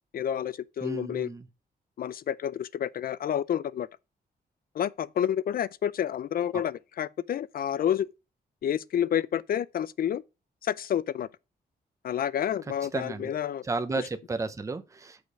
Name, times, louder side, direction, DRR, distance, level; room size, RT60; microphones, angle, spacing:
voice 1, 0.1-1.3 2.0-3.9 4.7-8.1 8.6-10.2 10.6-11.3 12.0-13.7, left 9 dB, 60° left, 0.4 m, -29 dB
voice 2, 0.8-1.4 12.9-13.3 13.6-15.2, right 3 dB, 20° right, 0.7 m, -33 dB
6.5 x 5.2 x 4.8 m
wide cardioid pair, 165°, 17 cm